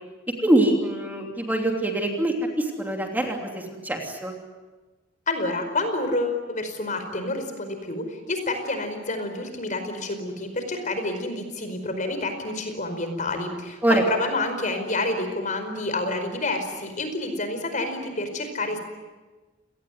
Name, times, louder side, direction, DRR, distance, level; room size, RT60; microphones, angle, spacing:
voice 1, 0.4-4.3 13.8-14.0, right 1 dB, 10° right, 2 dB, 3.0 m, -24 dB
voice 2, 5.3-18.8, left 2 dB, 45° left, 7 dB, 4.9 m, -28 dB
29.5 x 19.0 x 9.5 m, 1.3 s
head